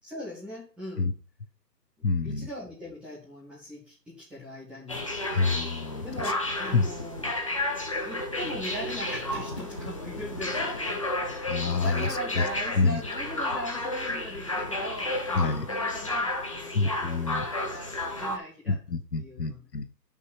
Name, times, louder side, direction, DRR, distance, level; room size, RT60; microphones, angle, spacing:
voice 1, 0.0-1.1 2.0-5.0 6.0-7.3 8.0-18.7 19.2-19.7, equal, ahead, -8 dB, 1.9 m, -40 dB
voice 2, 2.0-2.5 5.3-6.3 6.7-6.9 11.4-12.5 12.7-13.2 15.3-15.7 16.7-17.5 18.7-19.9, left 4 dB, 75° left, 9 dB, 1.3 m, -27 dB
sound 1, 4.9-18.4, left 1 dB, 20° left, 0.7 m, -32 dB
8.1 x 5.5 x 5.7 m, 0.36 s
figure-of-eight pair, 155°, 49 cm